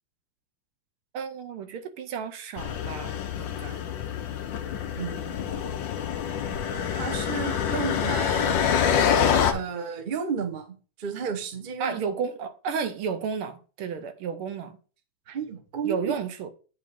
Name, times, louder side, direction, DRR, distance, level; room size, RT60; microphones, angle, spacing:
voice 1, 1.1-3.9 11.8-14.8 15.8-16.5, right 6 dB, 75° right, 1.7 m, -32 dB
sound 1, 2.6-9.5, left 8 dB, 65° left, 1.3 m, -26 dB
voice 2, 4.9-5.4 6.9-8.6 9.5-12.0 15.3-16.2, right 6 dB, 55° right, 0.5 m, -32 dB
8.8 x 3.0 x 5.2 m
omnidirectional pair, 2.4 m